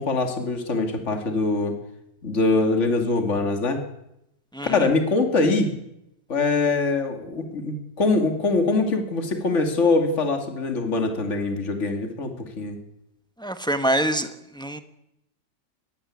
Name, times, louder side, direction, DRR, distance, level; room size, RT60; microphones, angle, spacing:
voice 1, 0.0-1.7 2.2-3.8 4.6-5.7 6.3-12.8, left 3 dB, 40° left, 5 dB, 2.7 m, -23 dB
voice 2, 4.5-4.8 13.4-14.3 14.5-14.8, right 1 dB, 5° left, 8 dB, 1.2 m, -25 dB
20.5 x 16.0 x 9.7 m, 0.83 s
omnidirectional pair, 1.9 m